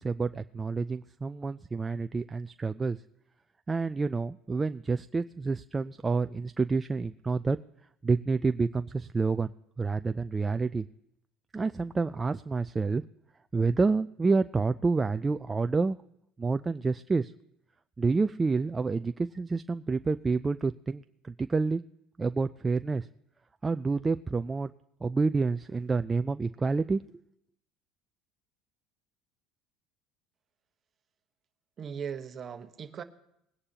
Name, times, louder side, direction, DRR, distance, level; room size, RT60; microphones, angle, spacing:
voice 1, 0.0-3.0 3.7-7.6 8.0-9.5 9.8-10.9 11.5-13.0 13.5-16.0 16.4-17.3 18.0-21.0 21.4-21.8 22.2-23.1 23.6-24.7 25.0-27.0, right 4 dB, 20° right, 10 dB, 0.3 m, -28 dB
voice 2, 31.8-33.0, right 7 dB, 35° right, 8 dB, 1.1 m, -38 dB
20.5 x 9.8 x 2.9 m, 0.78 s
supercardioid pair, 110°, 0 cm